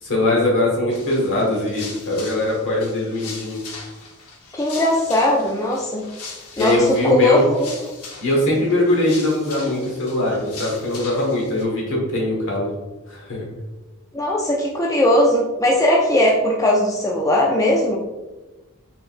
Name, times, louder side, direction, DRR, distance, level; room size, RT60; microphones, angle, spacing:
voice 1, 0.0-3.6 6.6-7.4 8.2-12.7 13.1-13.4, left 1 dB, 60° left, -3 dB, 1.4 m, -21 dB
sound 1, 0.9-11.6, left 4 dB, 80° left, 0.8 m, -39 dB
voice 2, 4.6-6.0 6.6-7.7 14.1-18.0, left 1 dB, 15° left, -2 dB, 0.4 m, -19 dB
4.9 x 3.7 x 2.5 m, 1.1 s
head